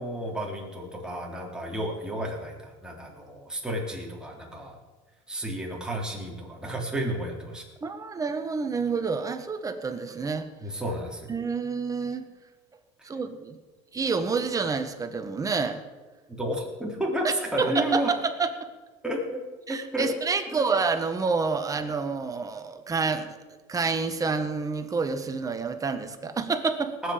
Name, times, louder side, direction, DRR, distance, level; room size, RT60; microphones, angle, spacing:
voice 1, 0.0-4.8 5.3-7.6 10.6-11.4 16.3-18.1 19.0-19.4 19.7-20.1 20.6-20.7 27.0-27.1, right 1 dB, 5° right, -1 dB, 3.7 m, -32 dB
voice 2, 7.8-10.4 11.3-12.2 13.0-13.6 13.9-15.8 17.2-17.3 17.6-18.5 19.7-23.3 23.7-26.9, right 4 dB, 25° right, 7 dB, 1.5 m, -28 dB
19.5 x 7.9 x 5.2 m, 1.3 s
supercardioid pair, 90°, 15 cm